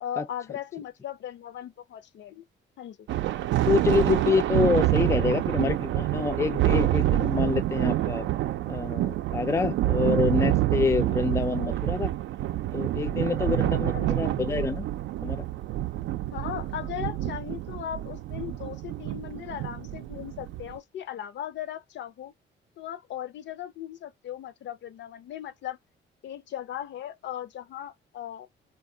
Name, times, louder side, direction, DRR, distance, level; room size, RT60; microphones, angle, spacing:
voice 1, 0.0-2.4 2.8-3.1 13.9-14.3 16.3-22.3 22.8-25.8 26.2-28.5, left 11 dB, 65° left, 0.5 m, -37 dB
Thunder, 3.1-20.8, right 14 dB, 70° right, 0.4 m, -27 dB
voice 2, 3.7-8.3 8.7-12.1 12.7-14.9 15.2-15.5, left 4 dB, 15° left, 0.4 m, -27 dB
2.3 x 2.2 x 3.7 m
cardioid pair, 90°, 20 cm